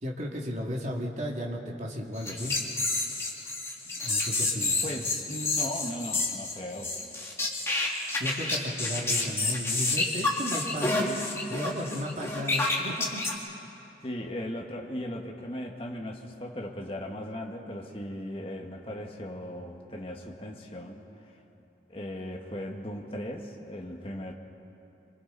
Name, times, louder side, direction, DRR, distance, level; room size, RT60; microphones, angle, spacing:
voice 1, 0.0-2.5 3.9-4.8 8.2-11.2 11.5-13.2, equal, 40° right, -2 dB, 2.4 m, -34 dB
sound 1, 2.2-13.3, left 2 dB, 15° left, 2.0 m, -29 dB
voice 2, 4.8-6.9 14.0-21.4 21.9-24.3, left 1 dB, 30° left, 0 dB, 1.6 m, -37 dB
27.0 x 25.5 x 4.1 m, 2.8 s
head